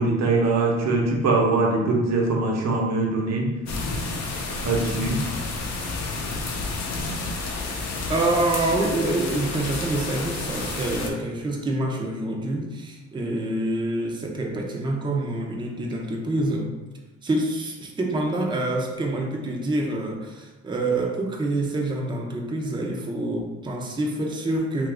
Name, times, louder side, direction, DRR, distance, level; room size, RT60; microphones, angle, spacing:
voice 1, 0.0-3.5 4.6-5.2, right 3 dB, 60° right, -1 dB, 0.8 m, -22 dB
sound 1, 3.7-11.1, left 3 dB, 60° left, 0.6 m, -30 dB
voice 2, 8.1-16.7 17.2-24.9, right 2 dB, 15° right, 0 dB, 0.5 m, -26 dB
2.7 x 2.5 x 3.3 m, 1.1 s
cardioid pair, 90°, 30 cm